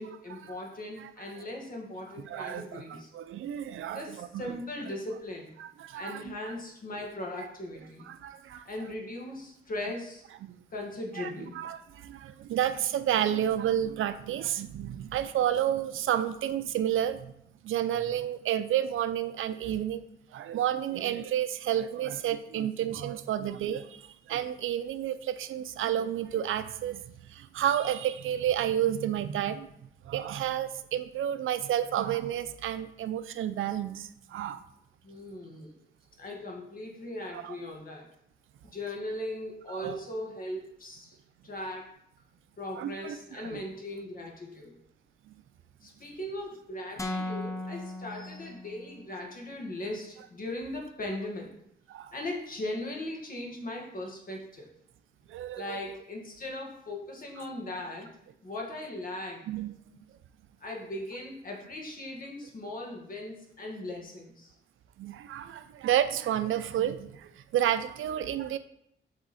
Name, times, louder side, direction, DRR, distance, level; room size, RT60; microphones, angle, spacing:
voice 1, 0.0-3.1 3.8-5.5 5.9-8.1 8.6-10.2 10.7-11.6 35.0-35.7 36.2-38.1 38.6-41.2 41.4-41.8 42.6-44.8 45.8-51.5 52.1-54.7 55.6-58.1 58.4-59.4 60.6-64.5, left 1 dB, 45° left, -1 dB, 1.6 m, -39 dB
voice 2, 2.2-2.8 3.1-4.5 5.6-6.3 8.1-8.6 10.4-10.5 11.2-17.3 17.6-20.1 20.3-27.0 27.3-29.7 30.1-34.6 37.3-37.5 39.7-40.0 42.8-43.6 51.9-52.1 55.3-55.8 59.5-59.8 65.0-68.6, right 11 dB, 90° right, 12 dB, 0.5 m, -30 dB
sound 1, 47.0-49.1, left 1 dB, 15° left, 0.6 m, -37 dB
7.7 x 3.5 x 4.2 m, 0.75 s
cardioid pair, 110°, 20 cm